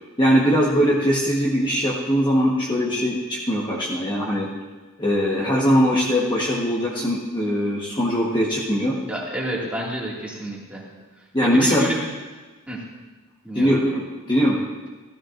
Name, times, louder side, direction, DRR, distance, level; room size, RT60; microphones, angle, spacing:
voice 1, 0.2-4.5 5.0-9.0 11.3-11.9 13.5-14.0 14.3-14.6, equal, 20° left, -4 dB, 1.2 m, -21 dB
voice 2, 9.1-10.8 11.4-12.1 12.7-12.8 13.4-13.7, right 1 dB, 5° right, -5 dB, 2.1 m, -29 dB
15.5 x 13.0 x 2.5 m, 1.3 s
head